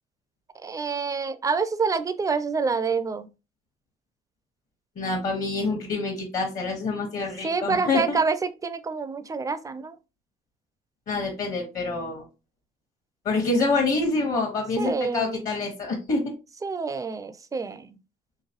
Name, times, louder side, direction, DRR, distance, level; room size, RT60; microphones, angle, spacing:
voice 1, 0.6-3.3 7.4-10.0 14.8-15.4 16.6-18.0, right 4 dB, 20° right, 0.4 m, -27 dB
voice 2, 5.0-8.2 11.1-12.2 13.2-16.2, left 3 dB, 50° left, 1.2 m, -26 dB
3.8 x 3.0 x 2.8 m
cardioid pair, 110°, 17 cm